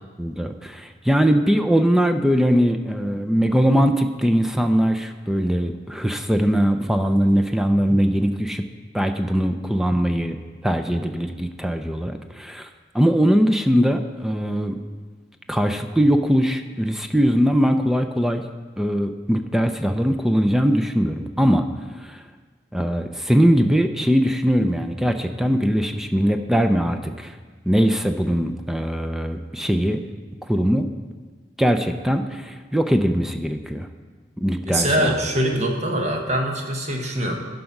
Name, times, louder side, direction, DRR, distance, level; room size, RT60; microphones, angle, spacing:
voice 1, 0.2-8.6 8.9-10.4 10.6-12.7 12.9-14.8 15.5-18.4 18.8-21.7 22.0-22.2 22.7-27.3 27.7-30.0 30.5-30.9 31.6-33.9 34.4-35.1, equal, ahead, 6 dB, 0.4 m, -21 dB
voice 2, 34.7-37.4, right 1 dB, 40° right, 2 dB, 1.2 m, -23 dB
11.5 x 5.3 x 5.9 m, 1.4 s
head